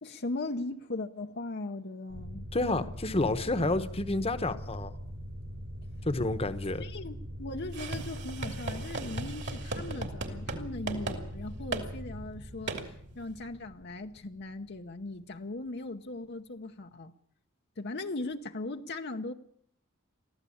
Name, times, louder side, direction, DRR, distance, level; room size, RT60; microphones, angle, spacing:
voice 1, 0.0-2.5 6.8-17.1 17.8-19.3, left 2 dB, 50° left, 0.9 m, -38 dB
sound 1, 2.1-15.3, equal, 75° right, 5.1 m, -42 dB
voice 2, 2.5-4.9 6.0-6.8, left 2 dB, 30° left, 1.1 m, -29 dB
sound 2, 7.7-10.6 10.9-11.2 11.7-11.9 12.7-12.8, right 3 dB, 55° right, 2.9 m, -36 dB
23.0 x 14.5 x 8.6 m
head